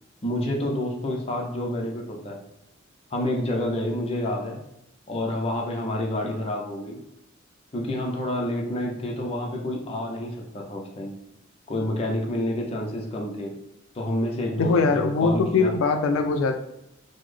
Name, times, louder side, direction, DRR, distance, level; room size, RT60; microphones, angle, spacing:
voice 1, 0.2-2.4 3.1-4.6 5.1-7.0 7.7-11.2 11.7-13.5 13.9-15.7, left 1 dB, 30° left, -1 dB, 0.6 m, -28 dB
voice 2, 14.6-16.6, left 4 dB, 90° left, 6 dB, 0.3 m, -21 dB
3.7 x 2.0 x 3.2 m, 0.83 s
head